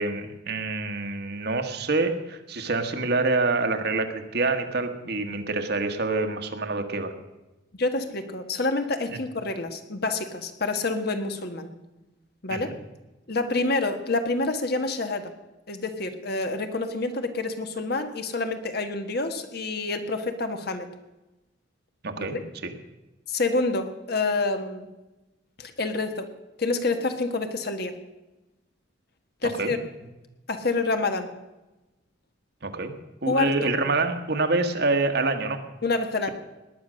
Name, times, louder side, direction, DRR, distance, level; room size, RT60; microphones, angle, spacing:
voice 1, 0.0-7.1 12.5-12.7 22.0-22.4 22.6-22.7 29.6-29.7 32.6-32.9 33.2-35.6, right 3 dB, 55° right, 6 dB, 1.4 m, -26 dB
voice 2, 7.8-11.7 12.4-12.8 13.3-15.3 15.7-20.9 22.2-22.4 23.3-24.9 25.6-26.3 26.6-28.0 29.4-29.8 30.5-31.3 33.2-33.7 35.8-36.3, left 3 dB, 55° left, 7 dB, 1.4 m, -27 dB
18.5 x 10.5 x 6.3 m, 1.0 s
head